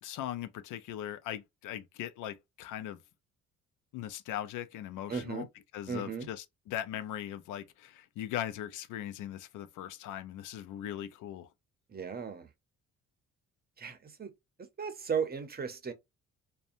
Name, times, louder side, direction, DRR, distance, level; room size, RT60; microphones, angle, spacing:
voice 1, 0.0-3.0 3.9-5.5 5.7-11.5, left 11 dB, 85° left, 0.5 m, -39 dB
voice 2, 5.1-5.5 5.9-6.3 11.9-12.5 13.8-14.3 14.8-15.9, right 6 dB, 30° right, 0.7 m, -35 dB
2.6 x 2.2 x 2.5 m
cardioid pair, 90°, 30 cm